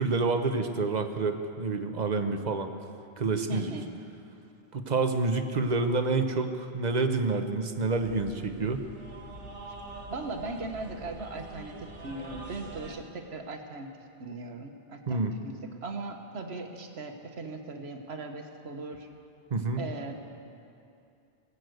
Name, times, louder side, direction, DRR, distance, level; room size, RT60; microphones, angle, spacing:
voice 1, 0.0-2.7 3.2-3.7 4.7-8.8 15.1-15.3 19.5-19.8, right 3 dB, 40° right, 7 dB, 1.0 m, -28 dB
voice 2, 3.5-3.9 10.1-13.9 14.2-15.5 15.8-19.1 19.8-20.1, right 3 dB, 65° right, 4 dB, 1.5 m, -38 dB
sound 1, 8.0-13.0, right 2 dB, 90° right, 1.7 m, -44 dB
20.5 x 8.3 x 7.9 m, 2.6 s
omnidirectional pair, 1.2 m